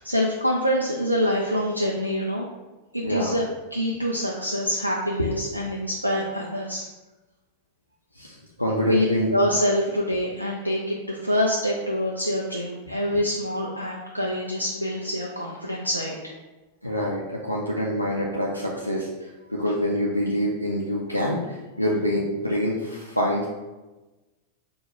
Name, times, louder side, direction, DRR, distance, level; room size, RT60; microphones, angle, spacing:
voice 1, 0.0-2.5 2.9-6.8 8.8-9.1 9.3-16.3, equal, 85° right, -2 dB, 0.4 m, -25 dB
voice 2, 3.0-3.3 5.2-5.3 8.1-9.3 16.8-23.5, equal, 90° left, -3 dB, 0.4 m, -26 dB
4.7 x 2.3 x 3.0 m, 1.1 s
figure-of-eight pair, 90°, 0 cm